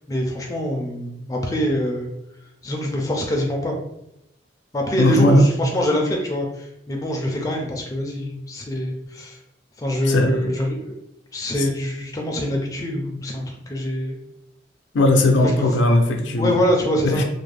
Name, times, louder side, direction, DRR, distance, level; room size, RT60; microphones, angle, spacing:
voice 1, 0.1-2.1 2.6-3.8 4.7-9.4 9.8-11.0 11.3-14.2 15.4-15.7 16.4-17.2, equal, 20° left, 0 dB, 0.3 m, -24 dB
voice 2, 5.0-5.5 10.1-10.5 11.6-11.7 14.9-16.6 17.0-17.2, left 1 dB, 80° left, 3 dB, 0.4 m, -17 dB
2.5 x 2.0 x 3.2 m, 0.81 s
head